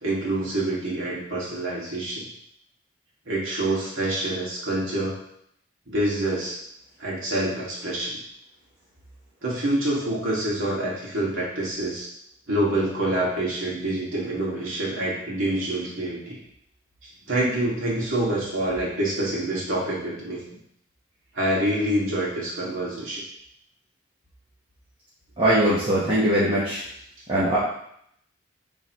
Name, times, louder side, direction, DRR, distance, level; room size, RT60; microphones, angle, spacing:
voice 1, 0.0-2.2 3.3-5.2 5.9-6.6 7.0-8.1 9.4-12.1 12.5-16.4 17.3-20.6 21.3-23.2, right 1 dB, 80° right, -6 dB, 2.3 m, -26 dB
voice 2, 25.4-26.8 27.3-27.6, right 1 dB, 25° right, -10 dB, 1.2 m, -21 dB
8.1 x 3.9 x 3.1 m, 0.72 s
head